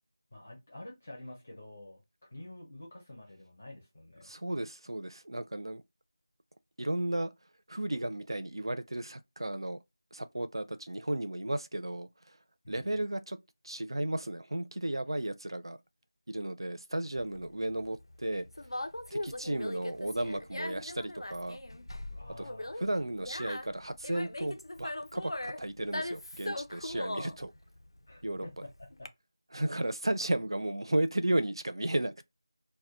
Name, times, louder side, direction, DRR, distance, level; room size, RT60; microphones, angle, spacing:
voice 1, 0.3-2.0 2.3-4.3 12.6-12.9 22.0-22.7 28.1-29.1, left 1 dB, 15° left, 0.5 m, -48 dB
voice 2, 4.2-5.8 6.8-7.3 7.7-9.8 10.1-12.1 12.7-13.4 13.6-15.8 16.3-18.5 19.1-21.6 22.4-22.5 22.8-27.5 28.2-28.5 29.5-32.2, right 1 dB, 70° right, 0.4 m, -34 dB
Conversation, 17.2-29.1, left 1 dB, 75° left, 0.4 m, -40 dB
2.1 x 2.1 x 2.9 m
figure-of-eight pair, 180°, 3 cm